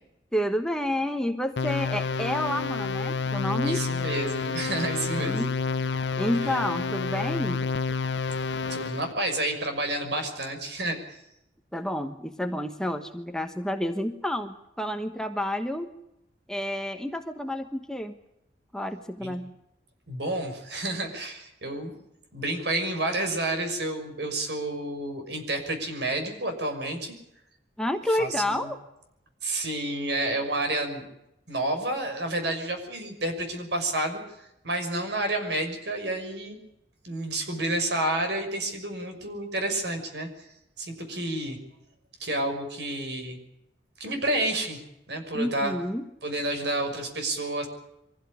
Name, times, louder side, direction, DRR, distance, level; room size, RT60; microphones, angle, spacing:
voice 1, 0.3-3.9 4.9-5.5 6.2-7.6 11.7-15.9 16.5-18.1 18.7-19.5 27.8-28.8 45.3-46.1, left 1 dB, 5° left, 6 dB, 1.2 m, -30 dB
sound 1, 1.6-9.1, left 4 dB, 75° left, 0.8 m, -29 dB
voice 2, 3.6-5.4 6.4-6.7 8.7-11.2 19.2-19.3 20.1-21.9 22.3-27.1 28.1-28.7 29.4-31.0 31.5-36.6 37.0-40.5 40.8-41.6 42.2-43.4 44.0-44.8 45.1-45.7 46.2-47.7, right 1 dB, 65° right, 5 dB, 6.2 m, -30 dB
24.5 x 16.0 x 9.9 m, 0.85 s
head